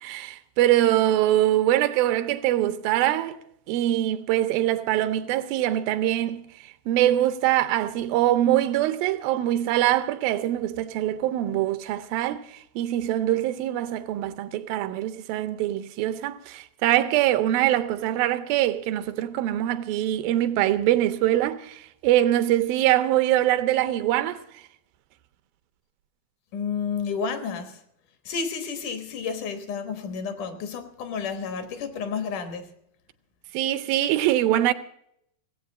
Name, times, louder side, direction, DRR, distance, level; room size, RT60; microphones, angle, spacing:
voice 1, 0.0-3.4 3.7-24.6 33.5-34.7, right 13 dB, 80° right, 2.4 m, -23 dB
voice 2, 26.5-27.7 28.3-32.7, left 6 dB, 65° left, 2.6 m, -31 dB
17.0 x 8.3 x 7.1 m
omnidirectional pair, 4.1 m